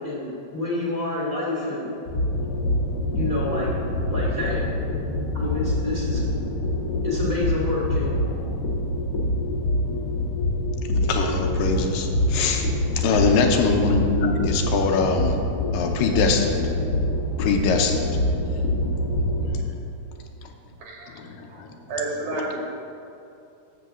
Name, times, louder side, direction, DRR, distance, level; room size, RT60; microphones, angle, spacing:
voice 1, 0.0-1.9 3.1-4.6 5.3-6.2 7.0-8.4, left 2 dB, 15° right, -6 dB, 1.9 m, -28 dB
sound 1, 2.1-19.6, left 1 dB, 45° left, 1.2 m, -25 dB
voice 2, 11.0-12.7 13.0-15.4 15.7-16.7 17.4-18.2 21.1-21.7 22.4-22.6, left 4 dB, 85° left, 3 dB, 2.5 m, -23 dB
voice 3, 21.9-22.6, right 3 dB, 70° right, -3 dB, 2.8 m, -29 dB
12.0 x 4.0 x 7.4 m, 2.6 s
omnidirectional pair, 3.9 m